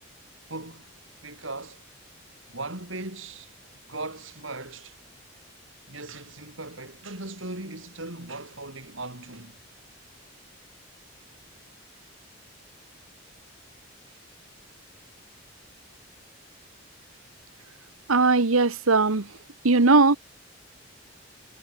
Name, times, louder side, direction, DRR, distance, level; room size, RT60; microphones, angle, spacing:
voice 1, 0.5-0.9 1.2-1.8 2.5-3.5 3.9-5.0 5.9-9.6, right 2 dB, 70° right, 6.0 m, -38 dB
voice 2, 18.1-19.3 19.6-20.2, right 3 dB, 90° right, 1.3 m, -19 dB
head